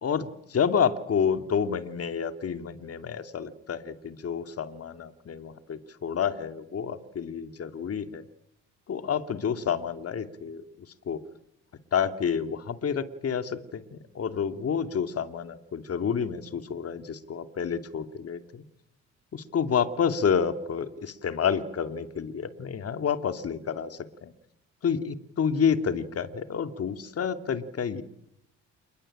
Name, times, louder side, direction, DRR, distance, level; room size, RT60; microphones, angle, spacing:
voice 1, 0.0-8.2 8.9-10.6 11.1-11.2 11.9-18.6 19.3-24.3 24.8-28.0, left 7 dB, 50° left, 9 dB, 2.8 m, -29 dB
29.0 x 22.0 x 8.9 m, 0.75 s
cardioid pair, 90°, 30 cm